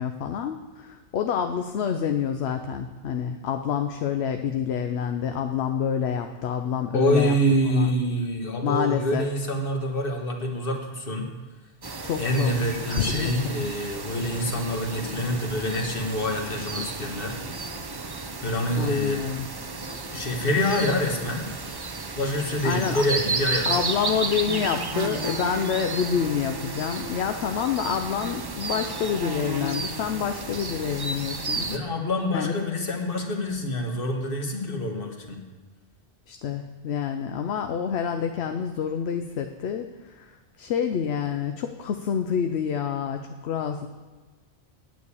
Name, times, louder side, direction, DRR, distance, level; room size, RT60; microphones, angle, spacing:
voice 1, 0.0-7.4 7.7-7.9 8.6-9.3 12.0-13.5 18.8-19.5 22.6-23.0 23.7-31.9 32.3-32.5 36.3-40.3 40.6-43.9, left 7 dB, 75° left, 6 dB, 0.9 m, -28 dB
voice 2, 6.9-11.3 12.2-17.4 18.4-19.2 20.1-21.4 22.1-23.8 31.6-35.4, equal, 55° left, 2 dB, 1.6 m, -26 dB
sound 1, 11.8-31.8, right 3 dB, 30° right, 0.5 m, -33 dB
9.3 x 6.3 x 8.5 m, 1.3 s
omnidirectional pair, 1.1 m